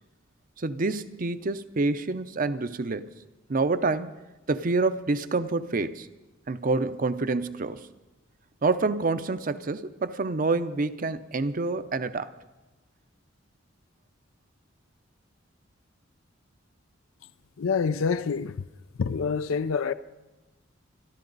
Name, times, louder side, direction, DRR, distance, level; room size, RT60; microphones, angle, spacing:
voice 1, 0.6-3.1 3.5-4.1 4.5-6.1 6.5-7.9 8.6-12.3, right 3 dB, 45° right, 0.6 m, -27 dB
voice 2, 17.6-18.6 19.0-19.9, left 5 dB, 90° left, 0.5 m, -26 dB
25.5 x 12.0 x 4.0 m
head